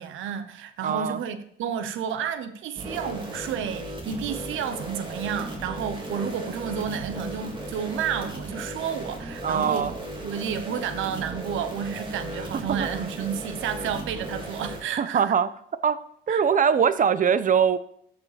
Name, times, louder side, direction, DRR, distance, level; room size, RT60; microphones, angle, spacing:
voice 1, 0.0-9.9 10.2-15.3 16.3-16.4, right 8 dB, 85° right, 1.0 m, -31 dB
voice 2, 0.8-1.2 9.4-9.9 12.7-13.1 15.0-15.5 15.8-16.0 16.3-17.8, right 7 dB, 40° right, 0.7 m, -22 dB
sound 1, 2.8-14.8, right 1 dB, 25° right, 2.7 m, -36 dB
13.5 x 5.1 x 5.0 m
cardioid pair, 90°, 20 cm